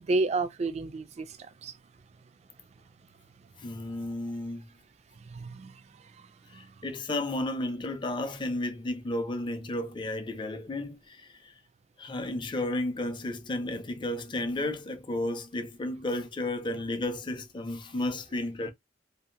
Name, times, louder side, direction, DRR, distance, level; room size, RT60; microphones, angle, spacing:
voice 1, 0.0-1.7 5.3-5.7 6.2-6.3 6.5-6.6, right 3 dB, 40° right, 0.3 m, -31 dB
voice 2, 3.6-4.7 6.5-11.2 12.0-18.7, left 1 dB, 25° left, 0.5 m, -33 dB
2.7 x 2.4 x 2.5 m
head